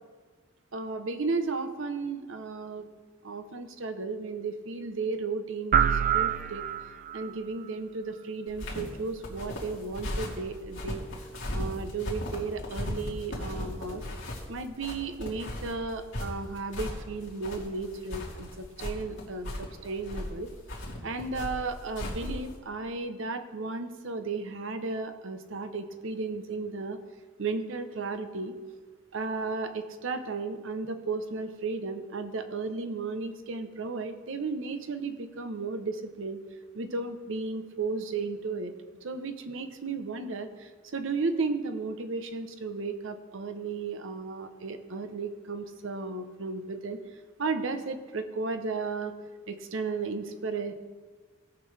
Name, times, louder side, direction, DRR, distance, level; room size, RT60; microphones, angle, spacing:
voice 1, 0.7-2.9 3.2-6.6 7.1-11.0 11.5-14.0 14.5-20.5 21.0-27.0 27.4-28.5 29.1-36.4 36.7-38.7 39.0-47.0 47.4-49.1 49.5-50.7, right 4 dB, 65° right, 9 dB, 0.8 m, -34 dB
sound 1, 5.7-7.3, right 8 dB, 40° right, 0.3 m, -26 dB
sound 2, 8.5-22.6, left 1 dB, 65° left, 2.5 m, -37 dB
18.0 x 6.0 x 3.3 m, 1.4 s
head